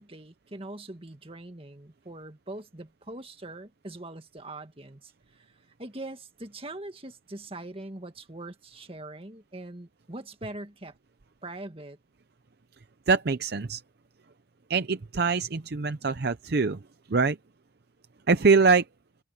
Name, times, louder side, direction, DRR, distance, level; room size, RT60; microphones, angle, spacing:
voice 1, 0.0-10.9 11.4-12.0, right 2 dB, 30° right, 1.9 m, -42 dB
voice 2, 13.1-13.8 14.7-16.8 17.1-17.4 18.3-18.8, right 4 dB, 55° right, 0.7 m, -23 dB
head